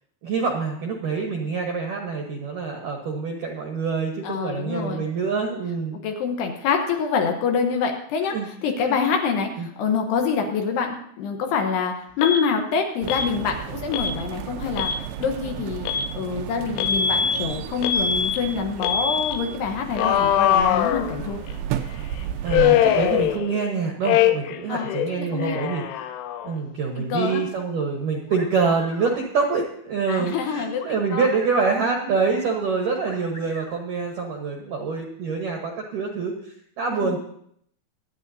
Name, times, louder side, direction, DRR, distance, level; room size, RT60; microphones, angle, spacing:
voice 1, 0.2-6.0 8.3-8.5 8.8-9.0 9.6-9.7 22.4-25.8 26.4-37.2, right 5 dB, 75° right, 1 dB, 2.0 m, -26 dB
voice 2, 4.2-5.1 5.9-14.9 15.2-15.9 16.1-21.4 24.7-24.9 25.2-25.6 27.0-27.4 30.1-30.8 31.1-31.3 36.9-37.2, left 6 dB, 70° left, 3 dB, 2.9 m, -26 dB
Alarm, 12.2-12.4 13.1-13.3 13.9-14.1 14.7-15.0 15.9-16.1 16.8-17.4 17.8-18.4 18.8-19.4 20.0-21.5 22.5-23.7 24.0-24.6 24.9-26.6, left 9 dB, 90° left, 3.1 m, -22 dB
sound 1, 13.0-23.4, right 9 dB, 90° right, 2.3 m, -34 dB
sound 2, 28.3-29.2 30.8-31.8 33.1-33.8, left 2 dB, 35° left, 2.0 m, -41 dB
23.5 x 9.9 x 2.7 m, 0.68 s
omnidirectional pair, 5.4 m